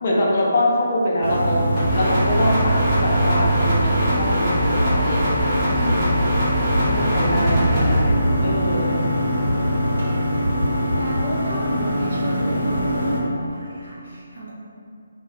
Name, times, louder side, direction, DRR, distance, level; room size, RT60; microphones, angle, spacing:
voice 1, 0.0-6.1 6.9-9.0, left 1 dB, 40° left, -4 dB, 0.4 m, -24 dB
sound 1, 1.2-13.2, equal, 80° left, 0.8 m, -22 dB
sound 2, 1.8-7.9, equal, 10° right, 0.9 m, -23 dB
voice 2, 5.7-6.2 6.9-7.6 8.8-9.0 11.0-14.5, right 1 dB, 50° right, -7 dB, 0.6 m, -32 dB
2.3 x 2.1 x 2.8 m, 2.4 s
figure-of-eight pair, 145°, 0 cm